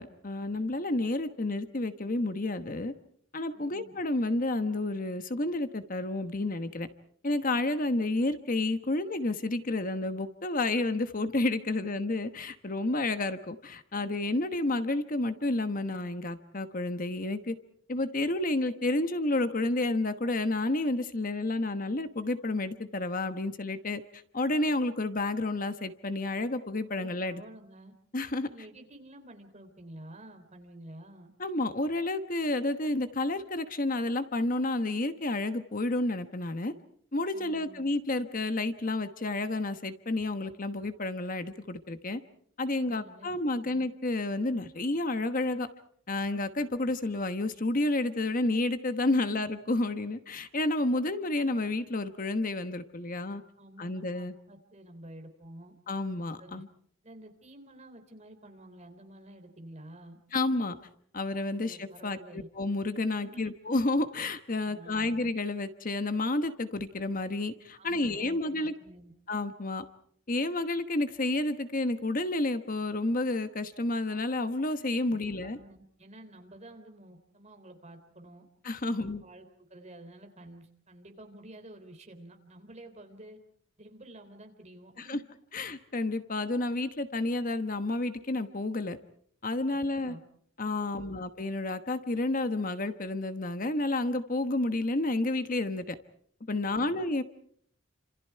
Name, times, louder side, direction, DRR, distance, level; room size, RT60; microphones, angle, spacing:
voice 1, 0.0-2.9 3.3-6.9 7.2-17.5 17.9-27.4 28.1-28.5 31.4-36.7 37.1-42.2 42.6-45.7 46.1-53.4 53.8-54.3 55.9-56.7 60.3-60.8 61.1-68.7 69.3-69.9 70.3-75.6 78.6-79.2 85.1-85.2 85.5-89.0 89.4-90.1 90.6-96.0 96.5-97.2, left 2 dB, 40° left, 10 dB, 1.2 m, -30 dB
voice 2, 3.5-3.9 11.7-12.0 26.9-27.9 28.5-31.3 37.3-37.9 42.8-43.8 49.1-49.5 53.6-55.7 56.4-56.6 57.0-60.2 61.5-62.5 63.2-63.5 64.6-65.2 67.8-69.1 75.0-78.5 78.9-83.4 83.8-85.2 89.7-90.2 90.8-91.1 96.6-96.9, right 1 dB, 35° right, 5 dB, 3.5 m, -50 dB
29.5 x 27.0 x 4.6 m, 0.63 s
head